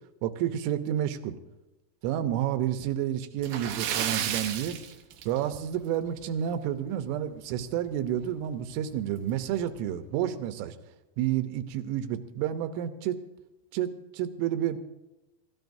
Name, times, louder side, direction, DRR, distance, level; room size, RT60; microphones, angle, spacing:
voice 1, 0.2-1.4 2.0-4.8 5.3-10.7 11.2-13.2 13.7-14.8, right 10 dB, 90° right, 9 dB, 3.4 m, -30 dB
Splash splatter, 3.4-5.8 6.1-6.2 6.7-6.8 8.2-8.3 8.6-8.7 9.4-9.6, right 9 dB, 70° right, 2.7 m, -32 dB
29.0 x 14.0 x 2.7 m, 1.0 s
omnidirectional pair, 5.5 m